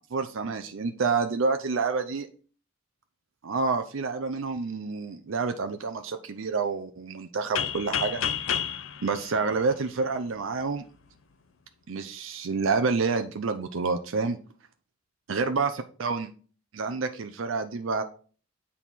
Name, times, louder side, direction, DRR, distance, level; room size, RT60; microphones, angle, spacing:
voice 1, 0.1-2.3 3.4-8.2 9.0-10.8 11.9-14.4 15.3-16.3 16.7-18.0, right 4 dB, 80° right, 7 dB, 0.5 m, -28 dB
sound 1, 7.6-10.3, left 9 dB, 90° left, 0.6 m, -31 dB
7.2 x 4.2 x 4.5 m, 0.40 s
head